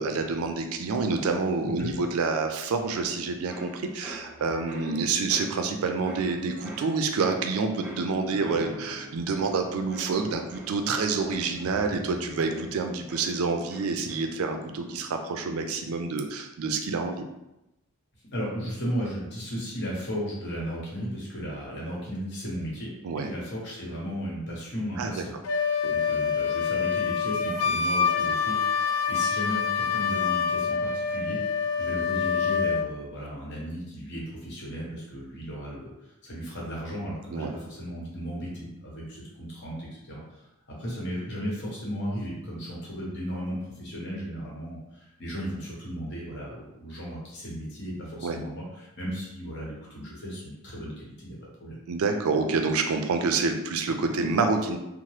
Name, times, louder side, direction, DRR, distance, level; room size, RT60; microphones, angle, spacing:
voice 1, 0.0-17.3 23.0-23.3 25.0-25.1 25.8-25.9 37.3-37.5 48.2-48.4 51.9-54.8, right 4 dB, 80° right, 6 dB, 0.4 m, -28 dB
sound 1, 3.0-14.6 14.9-15.4, equal, 5° right, 0.4 m, -45 dB
voice 2, 18.3-25.3 25.9-51.8, equal, 55° left, -4 dB, 0.9 m, -35 dB
Wind instrument woodwind instrument, 25.4-32.9, left 6 dB, 75° left, 0.3 m, -26 dB
2.9 x 2.0 x 3.1 m, 0.91 s
head